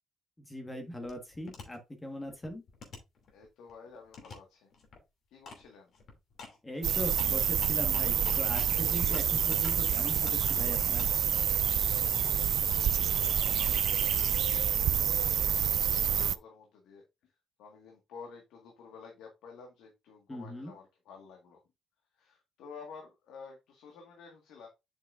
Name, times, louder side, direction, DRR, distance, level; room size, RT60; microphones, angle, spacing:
voice 1, 0.4-2.6 6.6-11.1 20.3-20.7, equal, 15° left, 4 dB, 1.5 m, -40 dB
sound 1, 1.1-1.7 2.2-3.7 4.1-4.3 4.7-5.0 5.5-5.6 5.9-9.8 10.2-11.1, left 4 dB, 60° left, 2.7 m, -47 dB
voice 2, 3.3-4.7 5.3-5.9 12.0-14.4 14.9-17.0 17.6-21.6 22.1-24.7, left 5 dB, 85° left, 2 dB, 1.7 m, -52 dB
sound 2, 6.8-16.4, right 9 dB, 65° right, 0.4 m, -28 dB
7.8 x 6.1 x 2.5 m, 0.23 s
cardioid pair, 90°, 0 cm